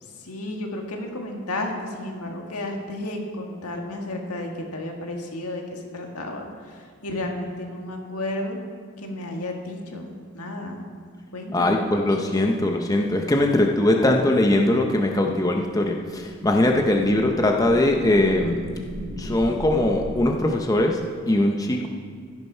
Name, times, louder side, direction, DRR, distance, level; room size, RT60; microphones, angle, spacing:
voice 1, 0.0-8.6 9.0-10.8 11.3-12.1, left 1 dB, 85° left, 2 dB, 1.7 m, -32 dB
voice 2, 11.5-18.5 19.2-21.0 21.3-21.9, left 1 dB, 15° left, 2 dB, 0.6 m, -21 dB
sound 1, 16.0-20.2, equal, 60° right, 2.6 m, -36 dB
15.0 x 6.5 x 5.5 m, 2.1 s
head